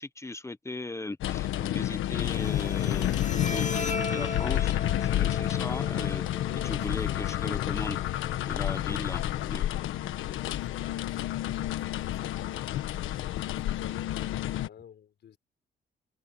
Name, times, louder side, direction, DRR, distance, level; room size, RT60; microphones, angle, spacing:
voice 1, 0.0-6.2 6.6-9.6, left 2 dB, 15° left, 1.2 m, -38 dB
sound 1, 1.2-14.7, left 13 dB, 85° left, 1.4 m, -30 dB
Bowed string instrument, 2.2-9.2, left 3 dB, 35° left, 2.9 m, -38 dB
voice 2, 6.4-7.7 8.8-9.9 10.2-12.9 13.2-15.4, left 9 dB, 60° left, 5.5 m, -50 dB
open air
cardioid pair, 90°, 20 cm